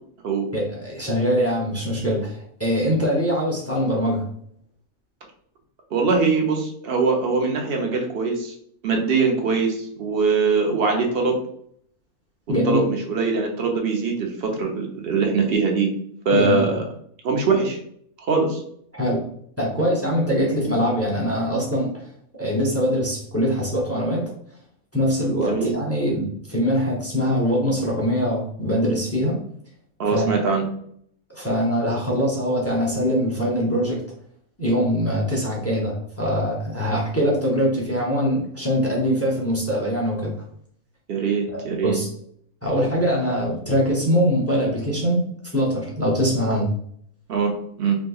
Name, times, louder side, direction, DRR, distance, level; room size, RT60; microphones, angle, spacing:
voice 1, 0.5-4.3 12.5-12.8 16.3-16.6 18.9-19.3 19.6-22.1 22.4-24.3 24.9-29.4 30.1-30.4 31.4-34.0 34.6-40.4 41.5-42.1 42.6-46.7, equal, 15° left, -4 dB, 0.5 m, -23 dB
voice 2, 5.9-8.5 8.8-11.4 12.6-15.9 16.2-16.8 17.2-17.8 18.3-18.6 25.4-25.7 30.0-30.6 36.8-36.9 41.1-42.0 47.3-47.5 47.8-48.0, right 4 dB, 55° right, 2 dB, 0.8 m, -22 dB
3.5 x 2.9 x 2.3 m, 0.65 s
omnidirectional pair, 1.5 m